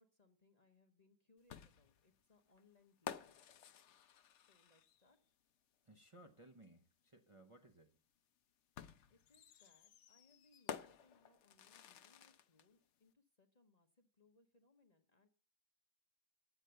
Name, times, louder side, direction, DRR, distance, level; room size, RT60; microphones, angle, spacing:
voice 1, 0.0-3.4 4.5-5.2 9.1-15.3, left 3 dB, 30° left, 3 dB, 1.0 m, -73 dB
sound 1, 1.5-5.1 6.6-6.7 8.8-12.7, left 8 dB, 60° left, 0.9 m, -52 dB
voice 2, 5.9-7.9, right 1 dB, 25° right, 2 dB, 0.9 m, -62 dB
9.0 x 7.0 x 8.0 m, 0.42 s
omnidirectional pair, 1.5 m